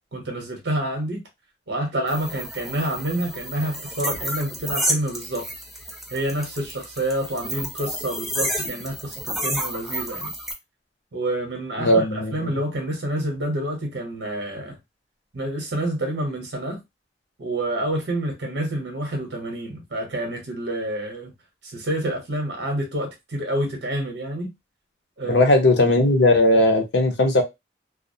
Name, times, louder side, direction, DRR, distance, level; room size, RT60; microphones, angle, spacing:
voice 1, 0.1-1.2 1.7-5.5 6.1-10.3 11.1-14.8 15.3-16.8 17.4-21.3 21.6-24.5 25.2-25.4, right 1 dB, 75° right, 0.8 m, -28 dB
sound 1, 2.1-10.5, right 1 dB, ahead, 0.4 m, -31 dB
voice 2, 11.8-12.5 25.3-27.4, left 1 dB, 75° left, 0.7 m, -18 dB
2.4 x 2.0 x 2.6 m
head